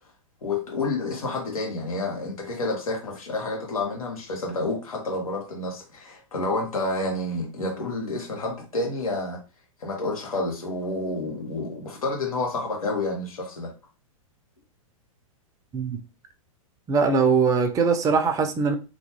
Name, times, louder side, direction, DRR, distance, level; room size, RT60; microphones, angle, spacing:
voice 1, 0.4-9.4 9.8-13.7, left 2 dB, 75° left, 1.4 m, -29 dB
voice 2, 16.9-18.7, right 5 dB, 20° right, 0.5 m, -21 dB
3.0 x 2.2 x 3.0 m
figure-of-eight pair, 105°, 18 cm